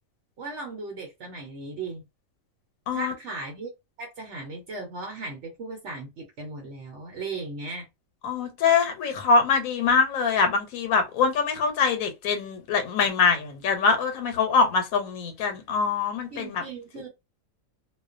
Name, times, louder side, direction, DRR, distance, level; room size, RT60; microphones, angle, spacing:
voice 1, 0.4-2.0 2.9-3.7 4.0-7.9 16.3-17.1, right 3 dB, 65° right, 0.9 m, -37 dB
voice 2, 8.2-16.6, left 5 dB, 85° left, 1.1 m, -23 dB
2.3 x 2.2 x 2.4 m
omnidirectional pair, 1.4 m